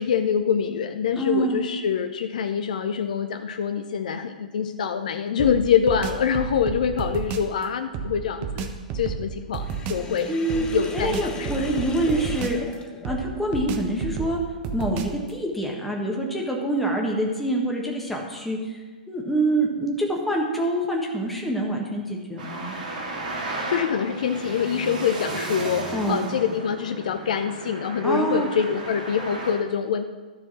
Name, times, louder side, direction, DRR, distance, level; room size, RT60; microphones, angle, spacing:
voice 1, 0.0-8.7 8.9-10.3 10.7-11.7 23.4-30.0, left 7 dB, 60° left, 8 dB, 0.6 m, -25 dB
voice 2, 1.2-1.6 10.3-10.7 10.9-12.6 13.0-14.4 14.7-22.7 25.9-26.2 28.0-28.5, right 1 dB, 5° left, -2 dB, 1.5 m, -26 dB
sound 1, 5.4-7.5 7.9-10.1 10.5-12.7 13.0-15.3, right 6 dB, 35° right, 0.9 m, -32 dB
Sink (filling or washing), 9.6-13.6, left 4 dB, 20° left, 1.0 m, -38 dB
Traffic noise roadway noise, 22.4-29.5, right 2 dB, 75° right, 2.6 m, -33 dB
13.0 x 4.5 x 6.0 m, 1.3 s
figure-of-eight pair, 115°, 4 cm